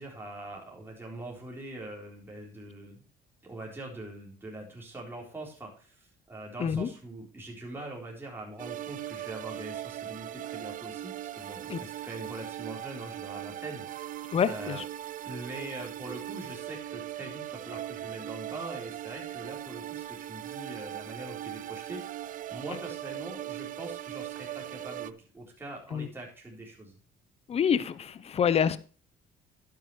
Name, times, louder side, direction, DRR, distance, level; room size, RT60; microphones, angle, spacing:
voice 1, 0.0-3.0 3.4-14.2 14.5-14.8 15.2-22.2 22.5-27.0, right 2 dB, 15° right, -2 dB, 4.0 m, -43 dB
sound 1, 8.6-25.1, right 13 dB, 55° right, 0.5 m, -39 dB
voice 2, 14.3-14.8 25.9-26.1 27.5-28.8, left 7 dB, 35° left, 16 dB, 0.7 m, -27 dB
12.0 x 9.7 x 3.2 m, 0.36 s
cardioid pair, 110°, 17 cm